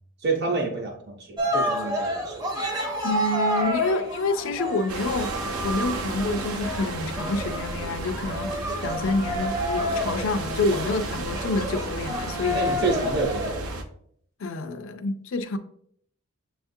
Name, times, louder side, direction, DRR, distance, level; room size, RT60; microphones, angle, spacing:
voice 1, 0.2-0.9 1.3-2.4 12.5-13.6, right 3 dB, 50° right, 0.8 m, -27 dB
Cheering, 1.4-13.8, equal, 15° right, 0.6 m, -30 dB
voice 2, 3.0-5.3 5.6-12.6 14.4-15.6, left 2 dB, 60° left, 0.4 m, -28 dB
sound 1, 4.9-13.8, right 2 dB, 85° right, 0.6 m, -33 dB
7.2 x 2.4 x 2.6 m
head